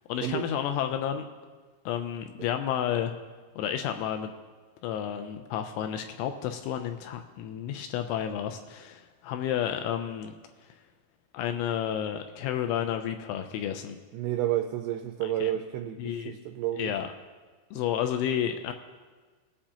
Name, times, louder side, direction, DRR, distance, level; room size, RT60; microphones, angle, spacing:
voice 1, 0.1-1.2 1.9-3.1 3.6-4.3 4.8-10.3 11.3-14.0 15.2-15.5 16.0-16.4 16.8-17.1 17.7-18.7, left 9 dB, 85° left, 7 dB, 2.9 m, -31 dB
voice 2, 14.1-16.9, right 12 dB, 90° right, 5 dB, 2.6 m, -30 dB
19.5 x 8.7 x 2.9 m, 1.4 s
omnidirectional pair, 5.9 m